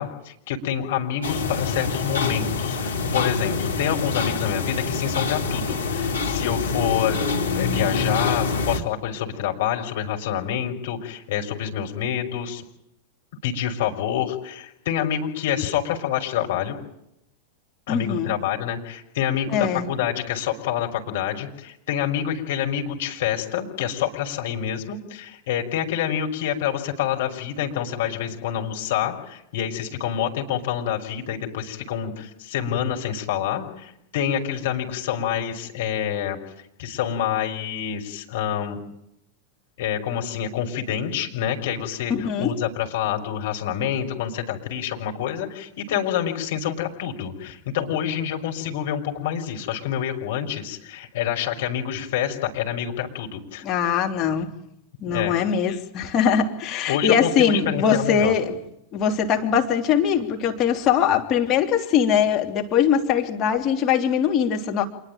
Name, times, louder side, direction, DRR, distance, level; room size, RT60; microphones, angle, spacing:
voice 1, 0.0-7.3 7.5-12.6 13.4-16.8 17.9-36.4 36.8-38.8 39.8-53.9 55.1-55.3 56.9-58.3, left 9 dB, 55° left, 2 dB, 5.9 m, -27 dB
sound 1, 1.2-8.8, left 4 dB, 75° left, 3.4 m, -25 dB
voice 2, 17.9-18.3 19.5-19.9 42.2-42.5 53.6-54.5 55.0-58.6 58.9-64.9, left 8 dB, 35° left, 3 dB, 3.3 m, -21 dB
27.5 x 21.5 x 9.1 m, 0.77 s
figure-of-eight pair, 90°, 0 cm